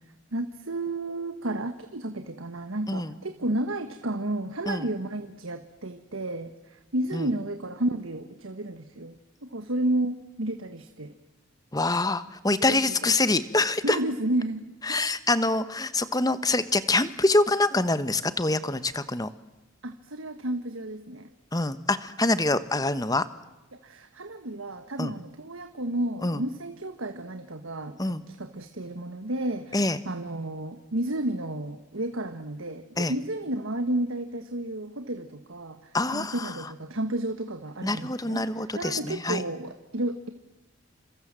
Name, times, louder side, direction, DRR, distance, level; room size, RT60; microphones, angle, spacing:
voice 1, 0.3-11.1 12.7-13.1 13.8-15.0 19.8-21.3 23.7-40.3, right 1 dB, 65° right, 8 dB, 1.5 m, -32 dB
voice 2, 11.7-14.0 14.9-19.3 21.5-23.2 25.0-25.1 26.2-26.4 28.0-28.2 29.7-30.0 33.0-33.1 35.9-36.5 37.8-39.4, left 2 dB, 15° left, 13 dB, 1.2 m, -25 dB
30.0 x 26.5 x 7.6 m, 1.0 s
head